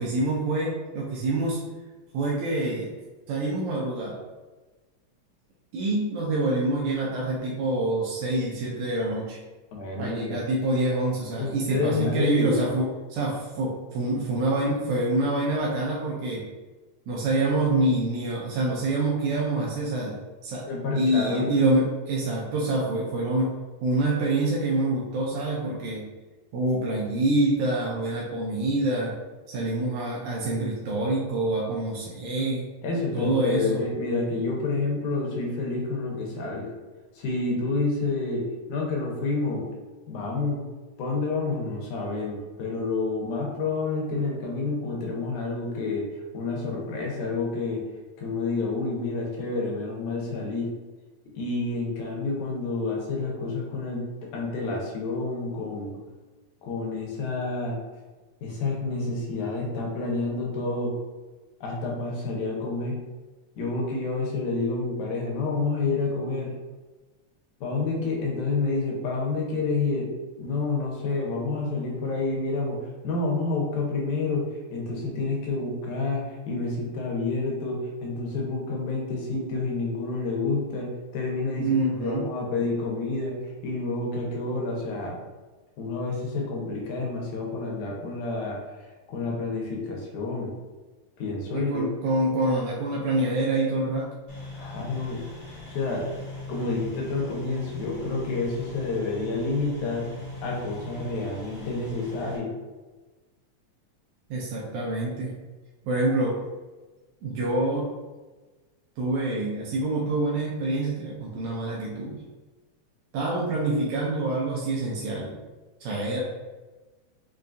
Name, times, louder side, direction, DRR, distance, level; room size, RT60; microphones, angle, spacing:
voice 1, 0.0-1.6 2.1-3.0 3.3-4.2 5.7-9.4 10.0-16.5 17.1-20.7 20.9-23.6 23.8-26.1 26.5-29.2 29.5-32.7 33.1-33.8 81.6-82.3 91.5-94.1 104.3-105.3 105.9-106.4 107.2-107.9 109.0-112.2 113.1-115.3 115.8-116.2, right 2 dB, 80° right, -4 dB, 1.9 m, -26 dB
voice 2, 9.7-10.4 11.4-12.5 20.7-21.5 32.8-36.7 37.2-39.7 40.1-40.6 41.0-46.1 46.3-47.8 48.2-50.7 51.4-56.0 56.6-57.8 58.4-61.0 61.6-63.0 63.6-66.5 67.6-70.1 70.4-74.5 74.7-85.2 85.8-88.6 89.1-90.5 91.2-91.9 94.5-95.2 95.7-96.1 96.5-100.1 100.4-102.5, left 3 dB, 85° left, -1 dB, 2.3 m, -29 dB
sound 1, 94.3-102.4, left 1 dB, 60° left, 1.4 m, -39 dB
5.3 x 2.3 x 2.5 m, 1.2 s
omnidirectional pair, 3.4 m